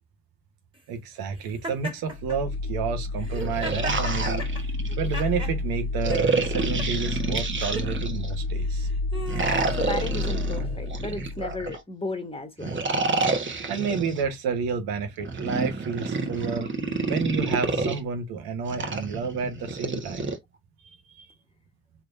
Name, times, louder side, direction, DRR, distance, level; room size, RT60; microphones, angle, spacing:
voice 1, 0.9-8.9 13.7-16.7 17.1-20.3 20.8-21.3, right 5 dB, 80° right, 1.2 m, -30 dB
Laughter, 1.6-2.4 3.2-5.6 6.1-6.9 7.6-7.9 8.6-10.9, right 1 dB, 15° right, 1.9 m, -37 dB
sound 1, 2.1-11.7, left 2 dB, 60° left, 0.8 m, -30 dB
sound 2, 3.3-5.2 6.0-8.4 9.3-11.8 12.6-14.2 15.2-18.0 18.7-20.4, right 3 dB, 30° right, 1.2 m, -29 dB
voice 2, 9.7-12.8, left 2 dB, 15° left, 1.4 m, -34 dB
3.7 x 2.8 x 2.6 m
supercardioid pair, 50°, 36 cm